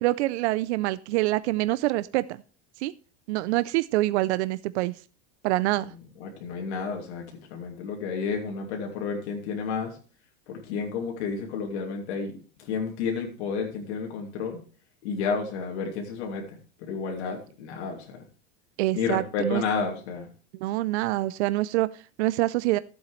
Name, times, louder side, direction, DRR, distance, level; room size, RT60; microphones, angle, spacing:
voice 1, 0.0-2.2 2.8-2.9 3.3-5.0 5.4-5.9 18.8-19.6 20.5-22.8, right 17 dB, 85° right, 0.6 m, -26 dB
voice 2, 6.2-10.0 10.5-12.3 12.6-14.6 15.0-18.2 18.9-20.3, left 5 dB, 85° left, 2.7 m, -31 dB
14.5 x 8.0 x 3.2 m
supercardioid pair, 180°, 33 cm